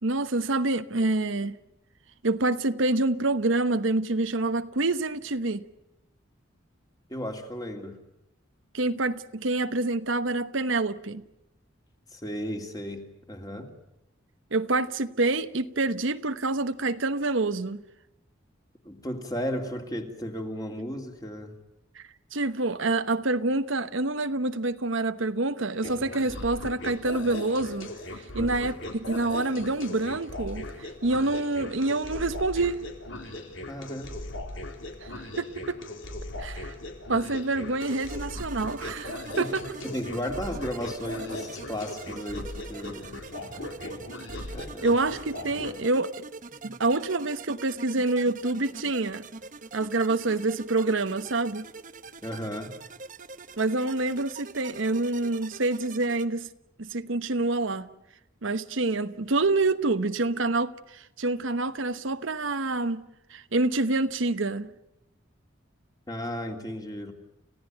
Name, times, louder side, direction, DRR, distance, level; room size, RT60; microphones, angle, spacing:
voice 1, 0.0-1.6 2.2-5.6 8.7-11.2 14.5-17.8 21.9-22.0 22.3-32.8 35.0-35.1 35.4-35.8 36.4-36.7 37.1-39.6 44.8-46.2 46.6-49.2 49.7-51.7 53.6-56.5 56.8-57.9 58.4-63.0 63.3-64.7, right 2 dB, 75° right, 1.1 m, -27 dB
voice 2, 7.1-8.0 12.1-13.7 18.8-21.5 28.3-28.5 33.7-34.1 39.4-39.5 39.8-43.1 44.5-44.9 46.6-46.7 52.2-52.8 66.1-67.1, equal, 20° left, 2.8 m, -35 dB
sound 1, 25.8-45.7, left 1 dB, 70° left, 3.6 m, -38 dB
sound 2, 37.8-56.2, right 4 dB, 40° right, 1.1 m, -44 dB
30.0 x 16.0 x 9.2 m
head